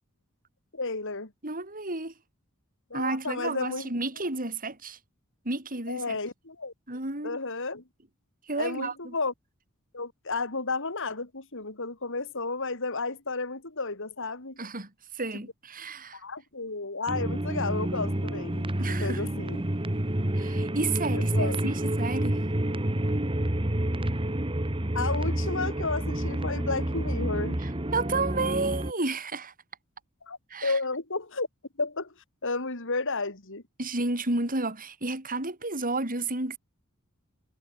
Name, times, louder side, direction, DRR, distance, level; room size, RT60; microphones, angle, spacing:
voice 1, 0.7-1.3 2.9-3.9 5.9-6.7 7.2-7.8 8.6-9.3 9.9-14.6 16.1-19.7 21.3-21.6 24.9-27.6 30.2-31.5 31.8-32.1 32.4-33.6, left 3 dB, 60° left, 3.9 m, -32 dB
voice 2, 1.4-2.1 2.9-5.0 5.4-6.2 6.9-7.4 8.4-9.1 14.6-16.2 18.8-19.2 20.3-22.4 27.6-29.5 30.5-30.8 33.8-36.6, right 3 dB, 40° right, 7.8 m, -32 dB
sound 1, 17.1-28.9, right 1 dB, 25° right, 1.6 m, -29 dB
head